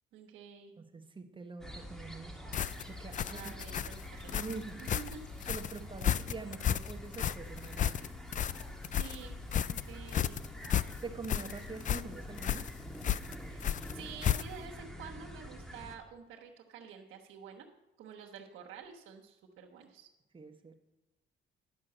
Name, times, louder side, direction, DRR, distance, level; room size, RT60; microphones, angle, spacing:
voice 1, 0.1-0.7 3.2-4.4 4.8-5.2 8.9-9.3 9.7-10.4 13.4-17.7 18.0-20.1, right 7 dB, 85° right, 1.2 m, -49 dB
voice 2, 0.8-3.5 4.2-4.9 5.5-8.2 11.0-12.8 20.3-20.7, right 4 dB, 25° right, 1.1 m, -45 dB
sound 1, 1.6-16.0, equal, ahead, 1.6 m, -47 dB
sound 2, 2.5-14.8, left 10 dB, 40° left, 0.4 m, -34 dB
11.0 x 5.7 x 7.8 m
cardioid pair, 90°, 20 cm